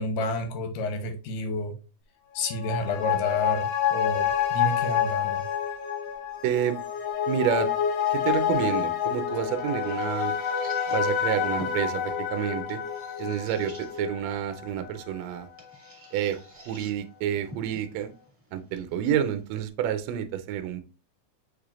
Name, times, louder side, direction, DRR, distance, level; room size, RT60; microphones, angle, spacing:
voice 1, 0.0-1.8 2.3-5.5, left 2 dB, 85° left, 2.4 m, -30 dB
sound 1, 2.4-15.2 15.6-15.7, left 9 dB, 70° left, 1.6 m, -28 dB
sound 2, 4.1-14.1, left 6 dB, 50° left, 0.7 m, -41 dB
voice 2, 6.4-6.8 7.3-7.7 8.1-10.3 10.9-12.8 13.2-15.5 16.1-18.1 18.5-20.8, right 10 dB, 80° right, 1.6 m, -29 dB
sound 3, 9.0-19.7, equal, 10° right, 0.9 m, -50 dB
6.5 x 3.3 x 2.4 m
omnidirectional pair, 3.6 m